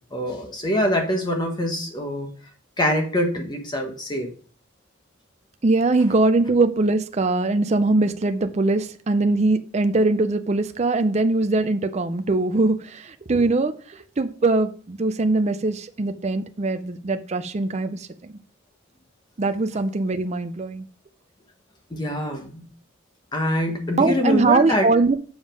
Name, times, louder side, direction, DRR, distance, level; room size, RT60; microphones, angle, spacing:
voice 1, 0.1-2.3 2.8-4.3 21.9-22.6 23.3-24.8, left 1 dB, 20° left, 3 dB, 1.3 m, -24 dB
voice 2, 5.6-18.4 19.4-20.9 24.0-25.1, right 3 dB, 30° right, 9 dB, 0.5 m, -22 dB
7.1 x 5.3 x 5.1 m, 0.41 s
head